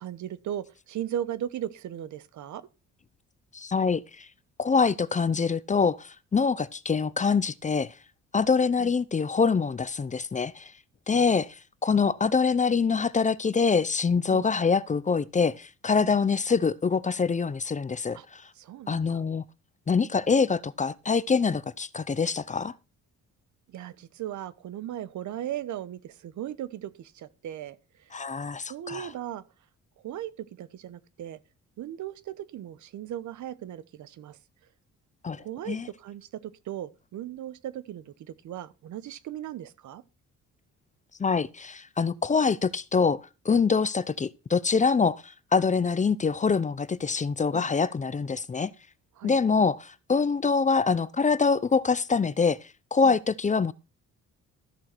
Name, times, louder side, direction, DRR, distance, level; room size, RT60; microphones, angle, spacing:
voice 1, 0.0-2.6 8.8-8.9 11.1-11.4 14.3-14.5 16.0-16.1 18.1-18.3 18.6-19.2 23.7-27.8 28.7-29.4 30.0-31.4 31.8-34.4 35.4-40.0 47.5-47.7 49.2-49.3 53.0-53.1, right 11 dB, 70° right, 1.0 m, -37 dB
voice 2, 3.5-4.3 4.6-7.9 8.3-10.7 11.1-18.4 18.9-19.4 19.9-22.7 28.1-29.1 35.2-35.9 41.2-48.7 49.2-52.6 52.9-53.7, left 5 dB, 25° left, 0.6 m, -25 dB
13.5 x 6.4 x 4.5 m
cardioid pair, 90°, 30 cm